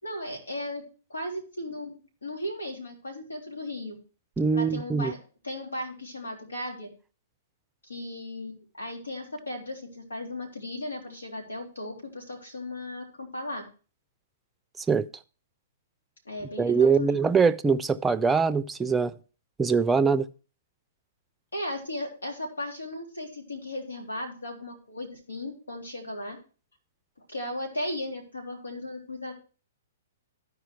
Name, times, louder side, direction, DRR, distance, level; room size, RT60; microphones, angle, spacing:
voice 1, 0.0-0.8 1.1-4.0 4.5-5.2 5.4-6.9 7.8-13.6 16.2-17.2 21.5-26.4 27.3-29.3, left 1 dB, 90° left, 3.3 m, -36 dB
voice 2, 4.4-5.1 14.8-15.0 16.6-19.1 19.6-20.3, right 5 dB, 10° right, 0.5 m, -23 dB
12.5 x 4.9 x 4.6 m
hypercardioid pair, 120°, 0 cm